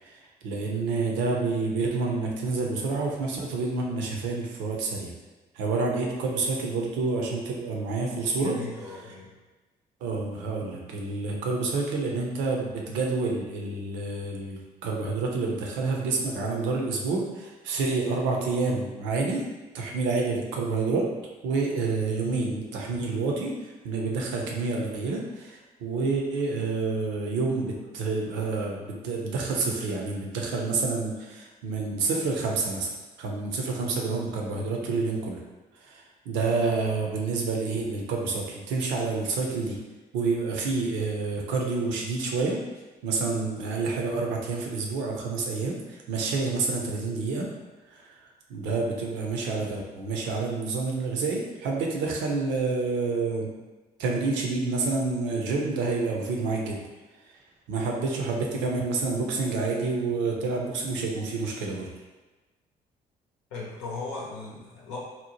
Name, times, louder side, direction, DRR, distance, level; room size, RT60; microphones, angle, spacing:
voice 1, 0.0-5.1 5.5-8.6 10.0-19.4 19.7-21.1 21.4-32.9 33.2-35.4 35.8-39.8 40.1-42.6 43.0-47.5 47.9-48.2 48.5-53.5 54.0-56.8 57.7-61.9, right 3 dB, 65° right, 0 dB, 0.6 m, -28 dB
voice 2, 8.4-9.4 63.5-65.0, left 3 dB, 70° left, -4 dB, 0.8 m, -37 dB
2.8 x 2.0 x 2.9 m, 1.2 s
hypercardioid pair, 45°, 20 cm